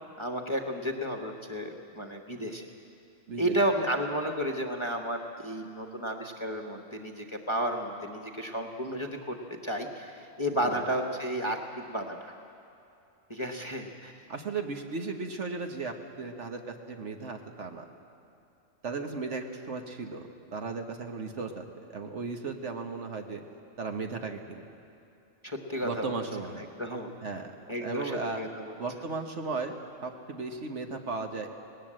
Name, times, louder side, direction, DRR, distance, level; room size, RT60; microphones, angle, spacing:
voice 1, 0.2-2.7 3.4-12.4 13.3-14.1 25.4-26.3 26.6-27.1 27.7-28.7, equal, 20° left, 3 dB, 1.1 m, -32 dB
voice 2, 14.3-17.8 18.8-23.4 23.8-24.7 25.8-26.6 27.2-27.5 27.8-28.4 28.7-29.7 30.0-31.5, right 4 dB, 60° right, 4 dB, 1.5 m, -36 dB
19.0 x 18.5 x 7.6 m, 2.8 s
omnidirectional pair, 1.4 m